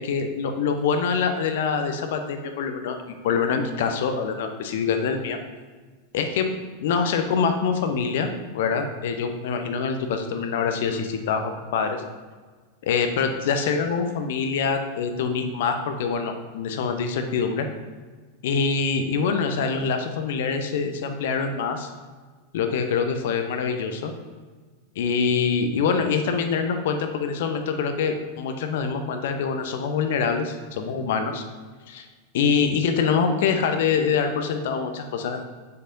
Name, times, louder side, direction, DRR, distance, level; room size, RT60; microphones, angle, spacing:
voice 1, 0.0-5.4 6.1-6.5 6.8-8.3 8.5-12.0 12.8-17.7 18.4-21.9 22.5-24.1 25.0-31.4 31.9-32.1 32.3-35.4, left 5 dB, 55° left, 6 dB, 0.7 m, -25 dB
7.4 x 6.6 x 2.6 m, 1.4 s
figure-of-eight pair, 90°, 0 cm